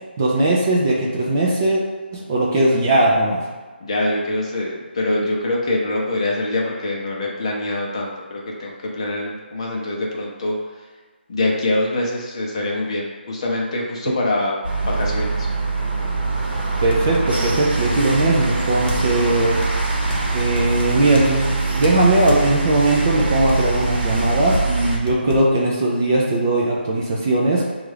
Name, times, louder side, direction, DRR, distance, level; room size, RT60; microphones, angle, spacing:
voice 1, 0.2-1.8 2.1-3.4 16.8-19.6 20.3-27.6, right 2 dB, 20° right, -4 dB, 0.3 m, -19 dB
voice 2, 3.8-10.6 11.3-15.5, left 2 dB, 30° left, -2 dB, 0.6 m, -24 dB
sound 1, 14.6-25.0, right 3 dB, 55° right, 0.9 m, -23 dB
sound 2, 15.8-15.9 16.4-16.5 16.9-17.3 18.2-19.2 19.6-21.3 21.8-22.5 23.0-25.5, equal, 55° left, 1.0 m, -30 dB
5.1 x 2.4 x 3.2 m, 1.4 s
figure-of-eight pair, 170°, 6 cm